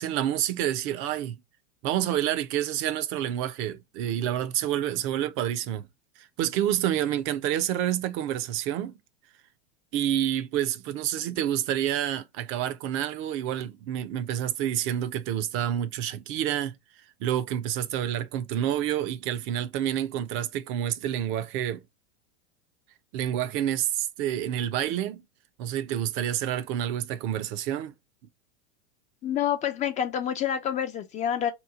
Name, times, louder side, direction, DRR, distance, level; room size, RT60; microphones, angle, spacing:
voice 1, 0.0-1.4 1.8-5.9 6.2-8.9 9.9-16.8 17.2-21.8 23.1-25.2 25.6-27.9, right 11 dB, 40° right, 0.5 m, -28 dB
voice 2, 29.2-31.5, left 9 dB, 25° left, 0.3 m, -28 dB
2.9 x 2.2 x 3.6 m
hypercardioid pair, 110°, 31 cm